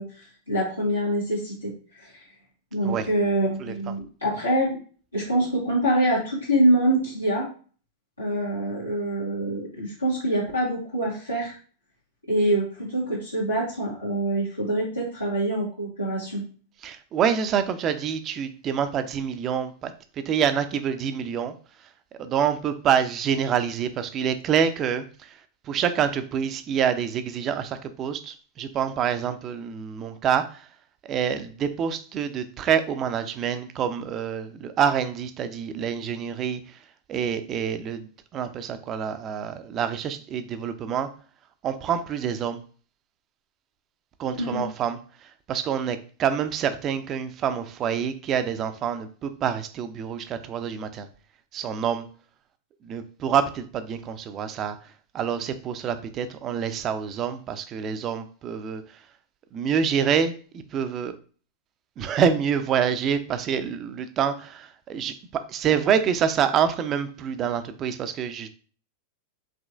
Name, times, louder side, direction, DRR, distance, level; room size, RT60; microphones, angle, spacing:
voice 1, 0.0-1.7 2.0-2.1 2.7-4.8 5.1-7.5 8.2-11.5 12.3-16.4 44.4-44.6, right 1 dB, 85° left, -8 dB, 1.4 m, -25 dB
voice 2, 16.8-21.6 22.2-30.7 31.0-36.8 37.1-41.1 41.6-42.6 44.2-51.1 51.5-52.1 52.8-59.0 59.5-61.1 62.0-68.5, right 8 dB, 30° right, 10 dB, 0.4 m, -27 dB
5.0 x 3.0 x 2.4 m, 0.40 s
figure-of-eight pair, 90°, 0 cm